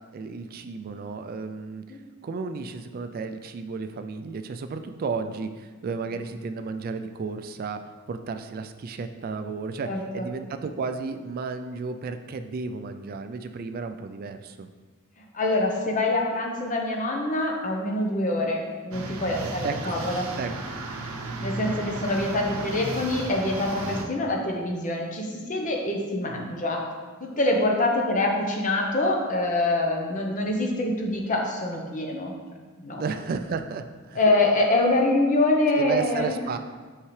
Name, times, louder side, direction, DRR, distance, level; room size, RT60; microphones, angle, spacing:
voice 1, 0.1-2.0 2.2-7.8 8.1-9.9 10.1-14.7 19.4-20.0 20.4-20.5 33.0-34.3 35.7-36.6, right 4 dB, 45° right, 8 dB, 0.3 m, -33 dB
voice 2, 9.8-10.3 15.2-20.3 21.4-26.8 27.2-32.3 32.8-33.0 34.1-36.3, left 2 dB, 35° left, 1 dB, 0.8 m, -25 dB
sound 1, 18.9-24.0, right 2 dB, 75° right, 0.7 m, -34 dB
5.8 x 5.6 x 3.2 m, 1.4 s
head